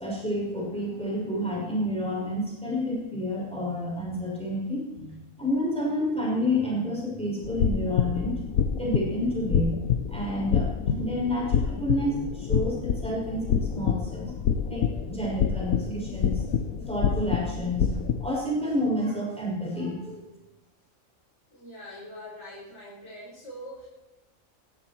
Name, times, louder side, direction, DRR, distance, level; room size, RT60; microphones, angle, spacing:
voice 1, 0.0-4.9 5.4-9.8 10.1-14.2 14.7-16.4 16.9-17.9 18.2-20.3, left 1 dB, 5° left, -4 dB, 6.3 m, -29 dB
sound 1, 7.4-18.3, left 7 dB, 80° left, 1.4 m, -27 dB
voice 2, 21.5-23.9, equal, 55° left, -7 dB, 5.4 m, -43 dB
21.0 x 14.5 x 4.5 m, 1.0 s
omnidirectional pair, 1.4 m